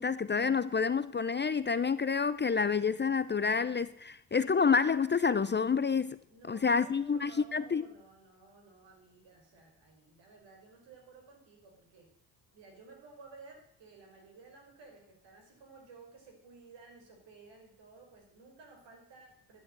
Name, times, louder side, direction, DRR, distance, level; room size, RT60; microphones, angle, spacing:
voice 1, 0.0-6.2 6.5-7.8, left 5 dB, 25° left, 0.7 m, -28 dB
voice 2, 6.3-12.1 12.5-19.6, right 3 dB, 65° right, 5.1 m, -55 dB
11.5 x 10.5 x 7.6 m
hypercardioid pair, 45°, 47 cm